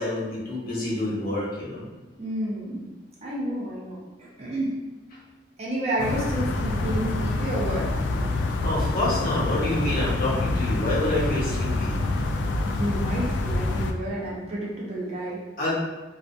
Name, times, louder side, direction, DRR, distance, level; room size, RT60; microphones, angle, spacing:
voice 1, 0.0-1.8 8.6-11.9 15.6-15.7, left 1 dB, 55° left, -7 dB, 0.9 m, -27 dB
voice 2, 2.2-2.8 3.2-4.8 5.6-7.9 12.6-15.4, right 1 dB, 35° right, -5 dB, 0.6 m, -30 dB
sound 1, 6.0-13.9, left 2 dB, 85° left, 0.3 m, -26 dB
2.4 x 2.2 x 2.5 m, 1.2 s
head